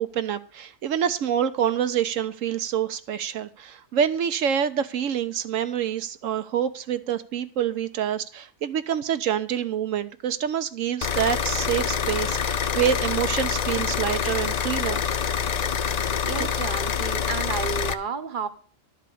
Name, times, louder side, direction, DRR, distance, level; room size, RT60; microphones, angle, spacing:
voice 1, 0.0-15.1 16.4-16.5, right 9 dB, 75° right, 11 dB, 1.0 m, -26 dB
sound 1, 11.0-17.9, left 7 dB, 65° left, 0.4 m, -26 dB
voice 2, 16.2-18.5, right 6 dB, 40° right, 10 dB, 1.0 m, -31 dB
12.0 x 4.9 x 8.4 m, 0.43 s
omnidirectional pair, 1.4 m